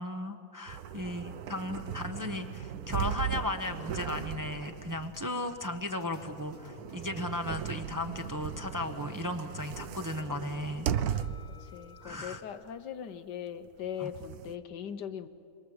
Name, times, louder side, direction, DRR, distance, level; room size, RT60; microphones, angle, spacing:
voice 1, 0.0-10.9 12.0-12.4 14.0-14.1, left 2 dB, 15° right, 6 dB, 0.8 m, -36 dB
sound 1, 0.7-11.6 12.1-12.2 13.7-14.5, right 9 dB, 65° right, 1.2 m, -37 dB
sound 2, 3.6-7.3 7.7-9.3 9.6-11.3, left 5 dB, 45° left, 1.3 m, -52 dB
sound 3, 6.5-12.4, left 6 dB, 45° right, 2.5 m, -60 dB
voice 2, 11.5-15.3, left 9 dB, 85° left, 11 dB, 1.6 m, -40 dB
29.0 x 23.0 x 7.9 m, 2.8 s
omnidirectional pair, 1.8 m